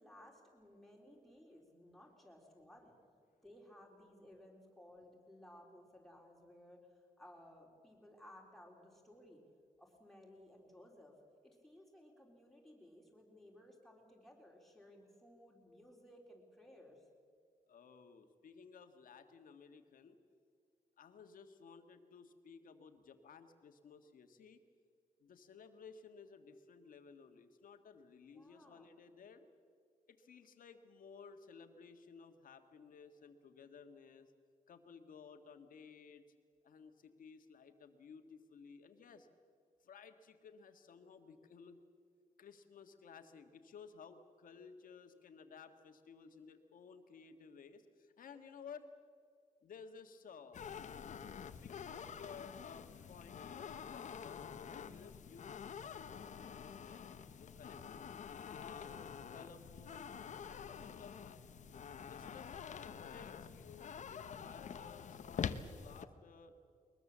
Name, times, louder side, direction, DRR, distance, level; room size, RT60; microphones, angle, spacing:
voice 1, 0.0-3.0 3.4-6.8 7.2-9.4 9.8-11.2 11.4-17.0 28.3-28.9, left 1 dB, ahead, -1 dB, 3.9 m, -59 dB
voice 2, 17.7-20.2 21.0-24.6 25.2-29.4 30.1-34.3 34.7-36.2 36.6-39.3 39.8-41.8 42.4-48.8 49.6-50.6 51.6-57.0 57.4-59.0 59.3-60.1 60.4-61.5 62.1-66.5, left 6 dB, 85° left, 7 dB, 1.7 m, -56 dB
sound 1, 50.5-66.0, left 7 dB, 60° left, 0.9 m, -47 dB
22.0 x 21.0 x 7.4 m, 2.2 s
wide cardioid pair, 145°, 14 cm